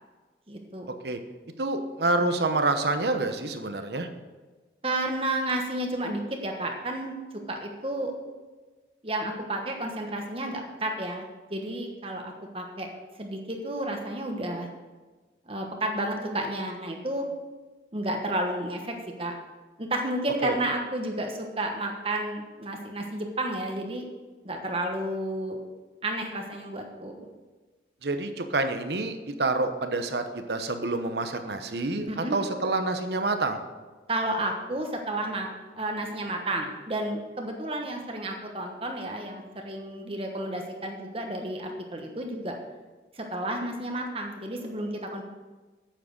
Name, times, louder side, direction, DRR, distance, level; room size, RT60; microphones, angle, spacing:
voice 1, 0.5-0.9 4.8-7.1 7.5-8.1 9.0-12.9 13.2-14.7 15.5-17.3 17.9-19.3 19.8-24.1 24.4-25.6 26.0-27.3 32.1-32.4 34.1-35.5 35.7-42.5 43.1-45.2, right 1 dB, 30° right, 3 dB, 1.1 m, -31 dB
voice 2, 1.6-4.1 20.4-20.6 28.0-33.6, right 2 dB, 70° right, 7 dB, 1.0 m, -27 dB
9.0 x 7.6 x 6.5 m, 1.3 s
head